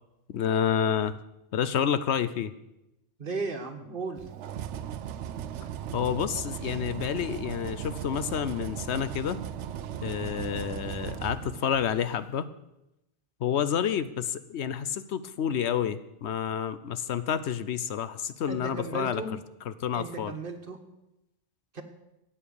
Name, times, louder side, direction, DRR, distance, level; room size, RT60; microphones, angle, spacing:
voice 1, 0.3-1.2 1.5-2.5 5.9-9.4 10.0-12.5 13.4-19.2 19.7-20.4, left 8 dB, 75° left, 14 dB, 1.0 m, -29 dB
voice 2, 3.2-4.2 18.5-19.3 19.9-20.8 21.7-21.8, right 3 dB, 50° right, 5 dB, 1.5 m, -35 dB
sound 1, 4.2-12.1, right 9 dB, 85° right, 0.9 m, -37 dB
14.5 x 8.6 x 7.0 m, 0.90 s
omnidirectional pair, 1.2 m